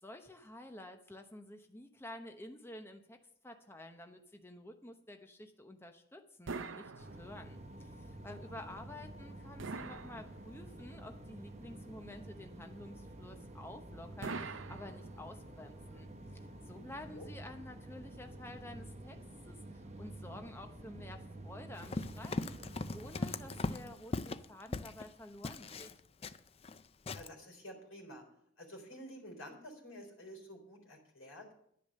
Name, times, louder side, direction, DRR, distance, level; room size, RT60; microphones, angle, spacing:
voice 1, 0.0-3.2 3.4-19.2 19.5-25.9, left 1 dB, 10° left, 5 dB, 0.9 m, -51 dB
sound 1, 6.5-7.7 9.6-10.8 14.2-15.5, right 4 dB, 70° right, 0.7 m, -44 dB
sound 2, 7.0-23.9, right 1 dB, 30° right, 1.0 m, -50 dB
Run, 21.7-25.1 25.4-26.8 27.1-27.3, left 3 dB, 30° left, 0.4 m, -39 dB
voice 2, 27.1-28.2 28.6-31.5, equal, 80° left, 2 dB, 3.7 m, -50 dB
10.5 x 10.0 x 6.5 m, 0.71 s
head